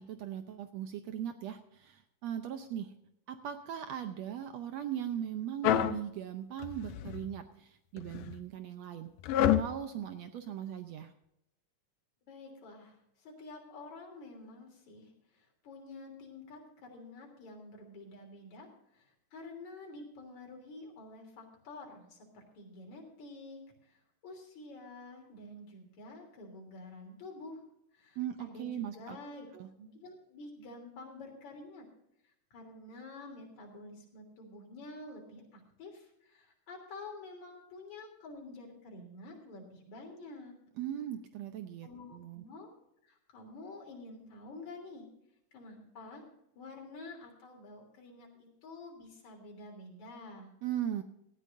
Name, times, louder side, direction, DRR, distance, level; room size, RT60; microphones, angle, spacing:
voice 1, 0.0-2.9 3.3-9.1 9.4-11.1 28.2-29.2 29.5-29.7 40.8-42.4 50.6-51.0, right 10 dB, 70° right, 8 dB, 1.7 m, -39 dB
sound 1, 5.6-6.0 6.6-7.3 8.0-8.3 9.2-9.7, left 11 dB, 90° left, 2.4 m, -28 dB
voice 2, 12.2-18.7 18.9-27.6 27.9-29.5 29.8-31.8 32.2-40.6 41.8-42.7 43.0-45.1 45.5-46.2 46.5-50.5, left 2 dB, 65° left, 1 dB, 4.7 m, -49 dB
18.0 x 13.5 x 2.6 m, 0.80 s
omnidirectional pair, 3.7 m